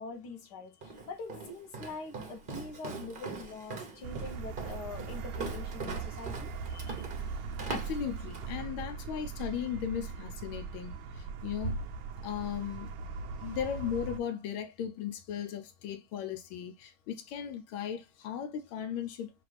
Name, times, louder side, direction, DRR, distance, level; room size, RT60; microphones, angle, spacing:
voice 1, 0.0-6.5 13.4-13.6, left 3 dB, 60° left, 1.6 m, -44 dB
Walk footsteps, 0.8-8.6, right 4 dB, 40° right, 0.8 m, -41 dB
sound 1, 4.0-14.2, right 5 dB, 85° right, 1.5 m, -40 dB
voice 2, 6.7-7.0 7.7-11.8 12.2-12.9 13.4-19.3, left 9 dB, 85° left, 1.4 m, -37 dB
6.0 x 2.5 x 3.2 m
omnidirectional pair, 2.2 m